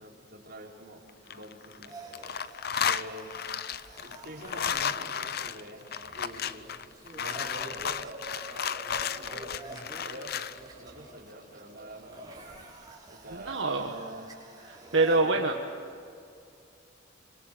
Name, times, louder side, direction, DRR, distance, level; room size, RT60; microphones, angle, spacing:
voice 1, 0.0-2.0 2.8-3.3 3.7-6.7 7.1-9.5 10.0-10.4 10.8-12.7 13.1-14.3 15.1-15.6, right 1 dB, 50° right, -3 dB, 5.1 m, -46 dB
sound 1, 1.1-1.9 2.1-10.6, left 8 dB, 55° left, 0.7 m, -33 dB
sound 2, 1.9-15.2, right 2 dB, 20° right, 5.9 m, -48 dB
voice 2, 13.5-13.9 14.7-15.5, right 3 dB, 75° right, 1 dB, 1.7 m, -25 dB
26.5 x 25.5 x 7.0 m, 2.4 s
head